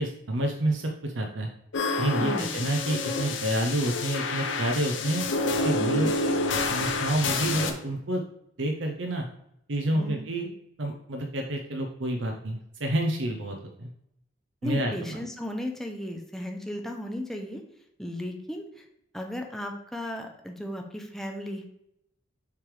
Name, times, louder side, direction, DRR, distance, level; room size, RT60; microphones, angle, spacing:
voice 1, 0.0-1.5 2.0-5.2 5.6-6.1 6.7-8.2 8.6-9.3 9.7-10.5 10.8-13.9 14.6-15.2, right 1 dB, 75° right, 2 dB, 0.8 m, -29 dB
sound 1, 1.7-7.7, left 3 dB, 80° left, 0.8 m, -28 dB
voice 2, 2.2-2.5 5.8-6.1 9.9-10.2 14.6-17.6 18.0-18.8 19.1-21.7, left 1 dB, ahead, 3 dB, 0.7 m, -35 dB
6.8 x 3.4 x 4.8 m, 0.78 s
head